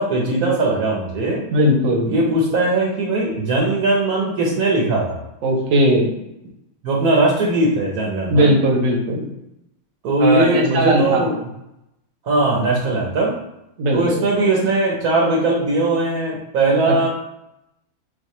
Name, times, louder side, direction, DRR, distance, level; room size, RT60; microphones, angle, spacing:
voice 1, 0.0-1.4 2.1-5.2 6.8-8.6 10.0-11.4 12.2-13.3 13.9-17.1, right 2 dB, 75° right, -4 dB, 1.5 m, -19 dB
voice 2, 1.5-2.1 5.4-6.1 8.3-9.3 10.2-11.3 13.8-14.3 16.9-17.1, equal, 60° right, 1 dB, 1.3 m, -18 dB
6.5 x 2.5 x 3.1 m, 0.87 s
omnidirectional pair, 1.6 m